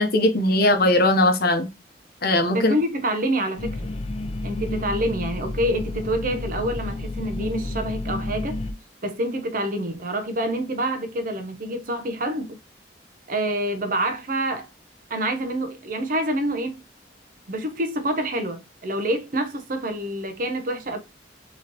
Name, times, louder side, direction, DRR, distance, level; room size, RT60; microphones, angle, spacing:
voice 1, 0.0-1.7 2.2-2.7, left 1 dB, 55° left, 0.9 m, -19 dB
voice 2, 2.5-3.8 4.4-8.6 9.0-12.6 13.3-14.7 15.1-16.8 17.5-21.0, right 1 dB, 50° right, 0.8 m, -27 dB
sound 1, 3.6-8.7, left 2 dB, 35° left, 0.6 m, -30 dB
4.9 x 3.1 x 2.9 m
head